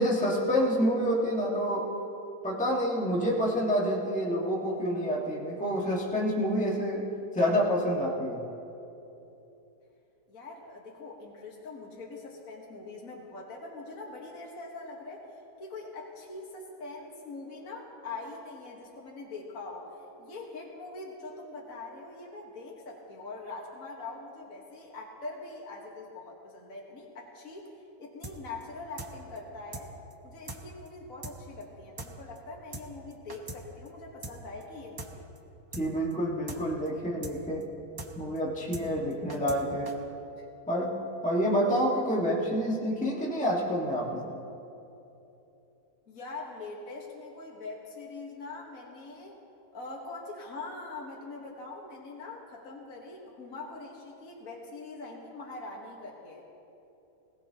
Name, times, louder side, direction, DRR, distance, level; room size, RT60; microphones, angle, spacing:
voice 1, 0.0-1.9 2.4-7.1 7.3-8.4 35.8-37.6 38.2-39.9 40.7-41.0 41.2-44.2, equal, 5° left, -4 dB, 1.6 m, -28 dB
voice 2, 10.3-15.3 15.6-30.0 30.2-35.3 40.4-40.5 46.1-49.3 49.7-56.5, left 3 dB, 65° left, -2 dB, 1.9 m, -43 dB
sound 1, 28.2-28.4 28.6-28.7 29.0-29.1 29.4-29.5 29.7-29.9 30.1-30.2 30.5-30.6 30.9-31.0 31.2-31.4 31.6-31.7 32.0-32.1 32.4-32.5 32.7-32.9 33.1-33.6 33.9-34.0 34.2-34.4 34.6-34.7 35.0-35.1 35.4-35.5 35.7-35.9 36.1-36.2 36.5-36.6 36.9-37.0 37.2-37.4 37.6-37.7 38.0-38.1 38.4-38.5 38.7-38.9 39.1-39.6 39.9-40.0, right 2 dB, 20° right, 0.7 m, -40 dB
20.0 x 17.5 x 2.9 m, 2.9 s
omnidirectional pair, 1.6 m